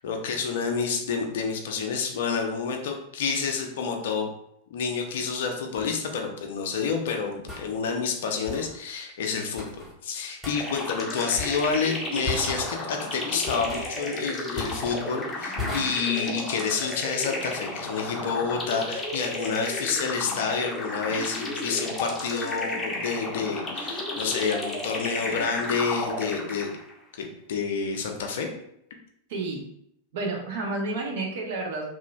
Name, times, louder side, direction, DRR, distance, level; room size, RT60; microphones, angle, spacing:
voice 1, 0.0-4.3 4.7-26.7 27.1-28.5, left 5 dB, 55° left, 3 dB, 0.4 m, -29 dB
sound 1, 5.8-5.9 7.5-7.7 8.5-8.7 9.6-9.9 10.4-10.6 11.4-11.8 12.3-12.7 13.5-13.9 14.6-15.0 15.6-15.8, left 2 dB, ahead, 1.0 m, -35 dB
sound 2, 10.5-26.9, left 2 dB, 15° left, 0.6 m, -33 dB
voice 2, 29.3-29.7 30.1-31.9, right 2 dB, 55° right, 0 dB, 0.7 m, -30 dB
3.0 x 2.4 x 2.3 m, 0.73 s
figure-of-eight pair, 90°, 0 cm